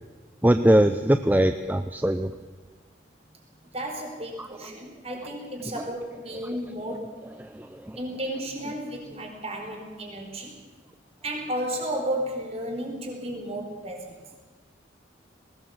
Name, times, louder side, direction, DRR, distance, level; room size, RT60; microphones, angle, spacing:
voice 1, 0.4-2.3 4.4-4.5 5.7-5.8 7.4-8.0, right 1 dB, 10° right, 9 dB, 0.6 m, -22 dB
voice 2, 3.7-7.2 8.0-10.5 11.2-14.2, right 1 dB, 35° right, 2 dB, 4.3 m, -33 dB
20.0 x 18.5 x 7.3 m, 1.4 s
head